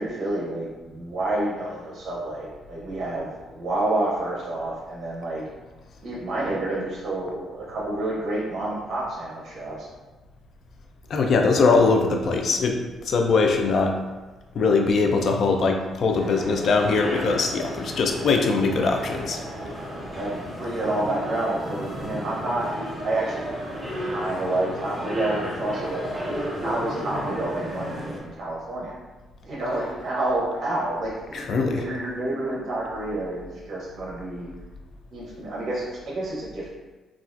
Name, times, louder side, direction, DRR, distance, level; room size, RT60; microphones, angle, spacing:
voice 1, 0.0-5.4 6.0-9.9 19.9-22.7 23.0-23.4 24.1-26.0 26.6-29.0 29.4-34.5 35.1-36.7, right 2 dB, 55° right, -4 dB, 0.7 m, -29 dB
voice 2, 11.1-12.8 13.1-13.9 14.5-19.4 31.3-31.9, left 4 dB, 60° left, 3 dB, 0.4 m, -21 dB
sound 1, 16.1-28.2, equal, ahead, 0.8 m, -33 dB
3.2 x 2.3 x 2.4 m, 1.2 s
cardioid pair, 90°, 0 cm